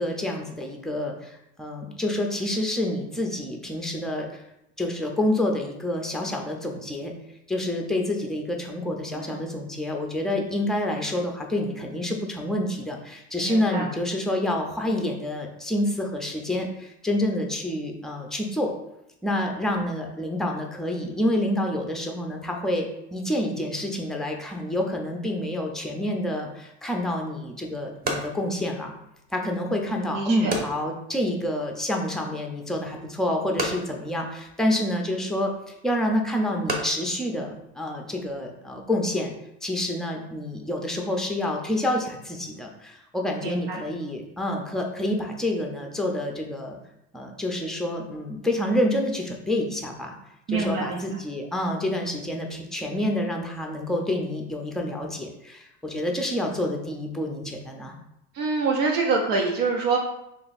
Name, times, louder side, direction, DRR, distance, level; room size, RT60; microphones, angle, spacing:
voice 1, 0.0-4.4 4.8-7.1 7.5-18.7 19.2-28.9 29.3-39.3 39.6-46.8 47.1-50.2 50.5-57.9, left 1 dB, ahead, 1 dB, 0.5 m, -28 dB
voice 2, 13.4-13.9 29.6-30.5 43.4-43.8 50.5-51.2 58.3-60.0, right 4 dB, 75° right, 0 dB, 0.7 m, -26 dB
sound 1, 27.4-38.4, right 1 dB, 25° right, 0.8 m, -37 dB
2.9 x 2.5 x 4.1 m, 0.85 s
supercardioid pair, 100°, 38 cm